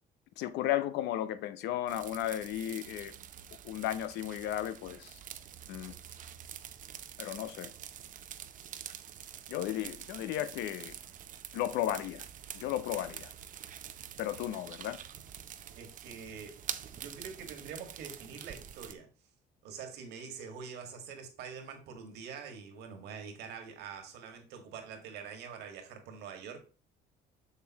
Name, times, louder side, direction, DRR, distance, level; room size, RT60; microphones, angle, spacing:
voice 1, 0.4-3.1 3.6-5.2 5.7-5.9 7.2-7.7 9.5-10.9 11.5-12.2 12.5-13.3 14.2-15.0, left 12 dB, 85° left, 0.7 m, -34 dB
sound 1, 1.9-18.9, right 9 dB, 50° right, 0.7 m, -46 dB
voice 2, 15.8-16.6 16.9-19.1 19.6-26.6, right 6 dB, 80° right, 1.9 m, -45 dB
6.8 x 6.7 x 3.0 m
cardioid pair, 110°, 17 cm